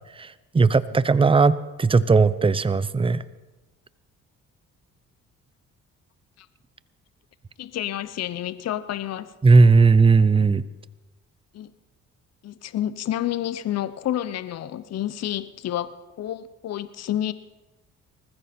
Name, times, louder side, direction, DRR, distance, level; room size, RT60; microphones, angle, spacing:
voice 1, 0.2-3.2 9.4-10.6, right 4 dB, 20° right, 17 dB, 0.6 m, -17 dB
voice 2, 7.6-9.3 11.5-11.7 12.4-17.3, left 12 dB, 55° left, 15 dB, 0.7 m, -29 dB
19.5 x 14.5 x 4.3 m, 1.1 s
cardioid pair, 80°, 30 cm